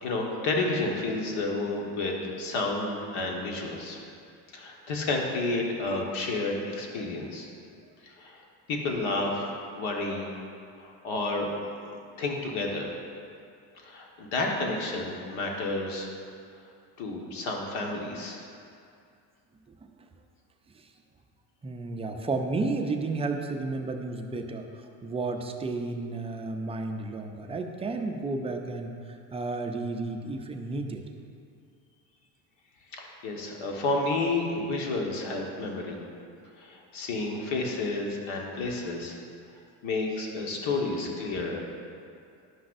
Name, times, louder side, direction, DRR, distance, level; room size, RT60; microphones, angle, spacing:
voice 1, 0.0-4.0 4.5-7.5 8.0-8.4 8.7-10.3 10.8-11.5 12.2-13.0 13.8-16.1 17.0-18.5 32.9-36.0 36.6-39.2 39.8-41.6, left 2 dB, 70° left, 0 dB, 1.5 m, -30 dB
voice 2, 21.6-24.6 25.0-31.0, right 3 dB, 15° right, 4 dB, 0.3 m, -32 dB
11.0 x 5.8 x 2.6 m, 2.4 s
supercardioid pair, 100°, 49 cm